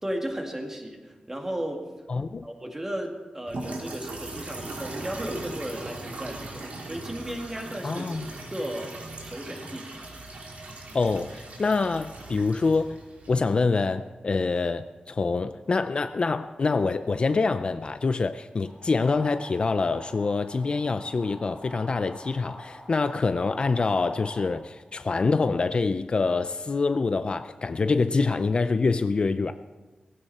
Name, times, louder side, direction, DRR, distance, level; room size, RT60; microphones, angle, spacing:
voice 1, 0.0-1.9 2.4-8.1 8.5-8.9 9.2-9.9, right 1 dB, 15° right, 2 dB, 2.1 m, -34 dB
voice 2, 2.1-2.5 7.8-8.3 10.9-13.0 13.3-29.5, left 4 dB, 40° left, 10 dB, 0.4 m, -25 dB
sound 1, 3.5-13.6, right 2 dB, 70° right, 3.0 m, -39 dB
sound 2, 18.6-24.6, equal, ahead, 3.5 m, -46 dB
17.5 x 15.5 x 4.3 m, 1.3 s
wide cardioid pair, 145°, 3 cm